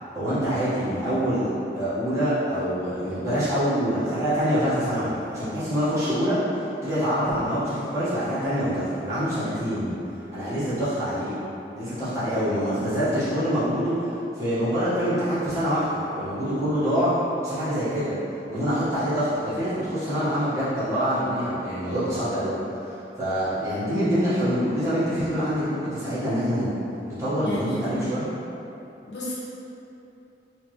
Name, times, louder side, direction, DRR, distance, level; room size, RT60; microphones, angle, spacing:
voice 1, 0.1-6.4 6.8-9.9 10.3-11.4 11.7-17.1 17.4-18.1 18.5-22.6 22.8-26.7 27.1-28.3, equal, 15° right, -14 dB, 1.3 m, -25 dB
voice 2, 27.4-28.1 29.1-29.3, equal, 75° left, -8 dB, 0.9 m, -32 dB
3.3 x 3.1 x 3.1 m, 2.9 s
head